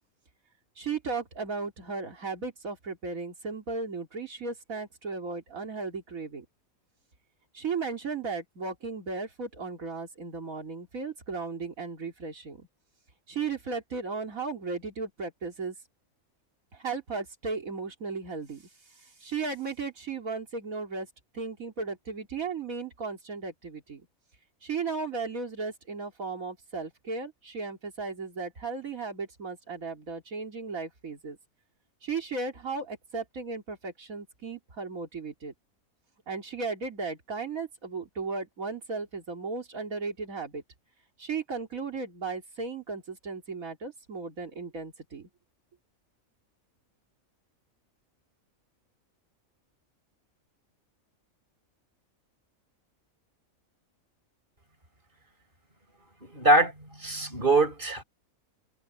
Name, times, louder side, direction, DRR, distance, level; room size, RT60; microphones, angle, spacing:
voice 1, 0.8-6.5 7.5-12.7 13.3-15.7 16.7-18.7 19.0-21.1 21.3-24.0 24.6-31.4 32.0-35.5 36.3-40.6 41.2-45.3, right 4 dB, 80° right, 3.4 m, -35 dB
voice 2, 56.2-58.0, right 2 dB, 40° right, 5.8 m, -23 dB
omnidirectional pair, 1.4 m